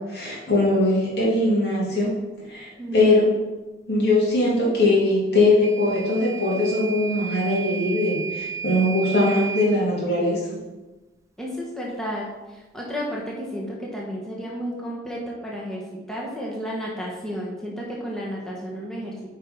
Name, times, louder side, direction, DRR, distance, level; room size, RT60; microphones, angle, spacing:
voice 1, 0.0-2.1 2.5-3.3 3.9-10.4, left 2 dB, 70° left, -4 dB, 2.7 m, -21 dB
voice 2, 2.8-3.1 11.4-19.3, equal, 5° left, -4 dB, 1.4 m, -32 dB
Microwave oven / Alarm, 5.6-9.7, right 7 dB, 15° right, 0.7 m, -33 dB
8.5 x 4.7 x 5.1 m, 1.1 s
head